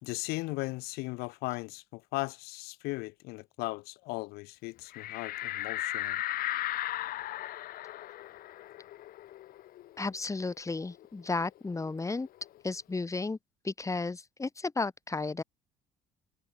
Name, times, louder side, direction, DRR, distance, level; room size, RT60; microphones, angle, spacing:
voice 1, 0.0-6.2, left 23 dB, 85° left, 3.9 m, -37 dB
sound 1, 4.9-10.1 10.5-10.6 10.9-12.6, left 14 dB, 65° left, 1.6 m, -37 dB
voice 2, 10.0-12.3 12.6-13.4 13.6-15.4, left 3 dB, 20° left, 4.1 m, -33 dB
supercardioid pair, 90°, 16 cm